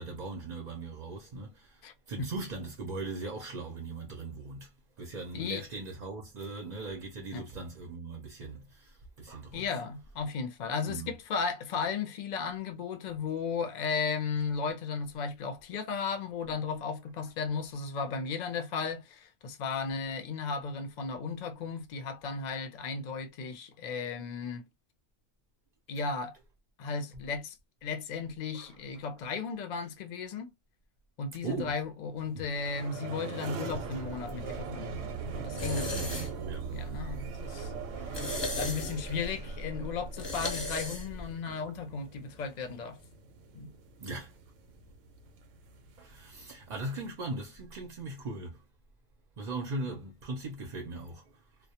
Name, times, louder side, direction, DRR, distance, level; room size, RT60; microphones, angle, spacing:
voice 1, 0.0-4.7 5.0-9.6 10.9-11.1 28.5-29.0 31.4-31.7 32.3-32.4 35.5-36.7 44.0-44.3 46.0-48.6 49.4-51.4, right 2 dB, 55° right, 0.5 m, -39 dB
voice 2, 9.5-24.6 25.9-26.4 26.8-27.6 27.8-30.5 31.2-36.2 36.7-37.7 38.2-38.3 38.6-43.0 43.5-43.7, left 5 dB, 65° left, 0.4 m, -35 dB
sound 1, 32.2-47.1, right 6 dB, 85° right, 1.0 m, -42 dB
sound 2, 33.7-41.3, left 2 dB, 25° left, 0.8 m, -38 dB
2.2 x 2.0 x 2.7 m
omnidirectional pair, 1.3 m